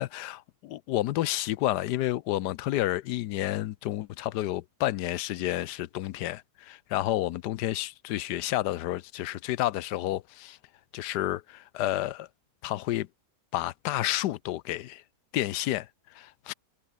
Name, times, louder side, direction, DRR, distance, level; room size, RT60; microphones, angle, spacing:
voice 1, 0.0-10.6 10.9-12.3 12.6-13.1 13.5-15.0 15.3-16.5, left 15 dB, 90° left, 1.2 m, -30 dB
omnidirectional pair, 1.7 m